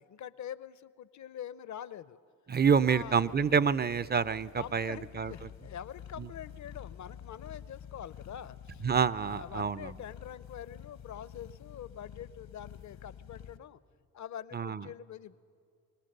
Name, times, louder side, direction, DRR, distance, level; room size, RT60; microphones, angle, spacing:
voice 1, 0.0-2.2 2.8-3.3 4.5-8.8 9.2-13.8 14.1-15.4, left 9 dB, 50° left, 17 dB, 0.7 m, -45 dB
voice 2, 2.5-5.3 6.2-6.3 8.8-9.9 14.5-14.9, right 6 dB, 25° right, 19 dB, 0.5 m, -27 dB
sound 1, 2.6-13.6, left 9 dB, 70° left, 1.1 m, -49 dB
22.0 x 19.0 x 6.7 m, 2.3 s
supercardioid pair, 55°, 38 cm